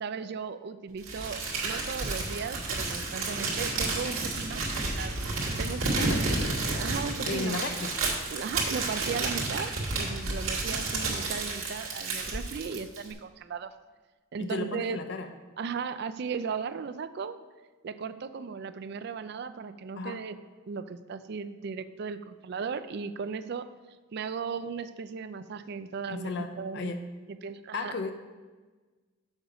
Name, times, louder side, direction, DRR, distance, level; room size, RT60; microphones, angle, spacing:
voice 1, 0.0-5.2 5.6-6.3 6.7-7.6 8.3-13.7 14.3-15.0 15.6-17.3 17.8-20.4 20.7-23.6 24.1-26.9 27.4-27.9, right 5 dB, 50° right, 12 dB, 0.4 m, -36 dB
Crumpling crinkling, 1.0-13.1, right 3 dB, 80° right, 2.0 m, -31 dB
voice 2, 6.1-6.5 7.2-7.9 14.4-15.3 20.0-20.2 26.1-27.0 27.7-28.1, left 3 dB, 55° left, 7 dB, 0.5 m, -34 dB
7.2 x 6.5 x 5.0 m, 1.3 s
head